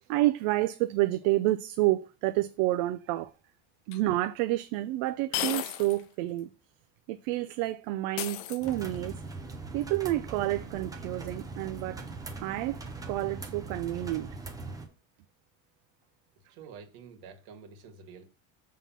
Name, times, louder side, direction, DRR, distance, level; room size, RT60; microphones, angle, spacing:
voice 1, 0.1-3.3 3.9-6.5 7.1-9.1 9.7-12.0 12.4-12.8 13.1-14.3, right 17 dB, 80° right, 0.6 m, -29 dB
sound 1, 3.9-4.0 5.3-6.0 6.4-6.5 8.2-9.1, left 13 dB, 60° left, 0.7 m, -34 dB
sound 2, 8.6-14.9, right 3 dB, 10° right, 0.8 m, -41 dB
voice 2, 16.5-18.2, right 6 dB, 60° right, 2.0 m, -48 dB
7.4 x 3.8 x 5.6 m
cardioid pair, 165°, 41 cm